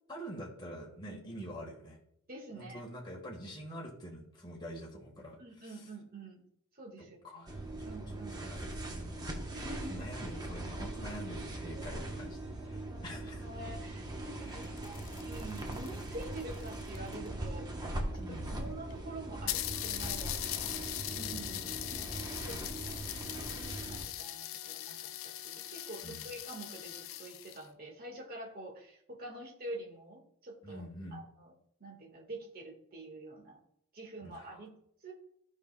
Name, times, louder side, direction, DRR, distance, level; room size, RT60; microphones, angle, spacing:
voice 1, 0.1-2.0 2.5-5.9 7.0-8.0 8.3-9.5 9.9-12.4 12.6-13.4 14.4-14.7 18.1-18.7 20.7-21.7 26.0-26.3 30.6-31.2 34.2-34.6, equal, 20° left, -2 dB, 1.4 m, -46 dB
voice 2, 1.1-1.4 2.3-2.8 5.4-6.4 6.7-7.6 7.8-8.3 9.5-10.1 11.7-12.3 12.9-20.4 21.1-22.1 22.4-30.8 31.1-31.5 31.8-33.6 33.9-34.7 35.0-35.1, right 1 dB, 40° right, 1 dB, 1.6 m, -47 dB
sound 1, 7.5-24.1, right 1 dB, 20° right, 0.9 m, -41 dB
sound 2, 14.5-17.3 18.1-18.2 18.5-18.6 18.9-19.0 19.5-27.7, left 12 dB, 60° left, 0.4 m, -40 dB
14.5 x 5.3 x 2.2 m, 0.71 s
head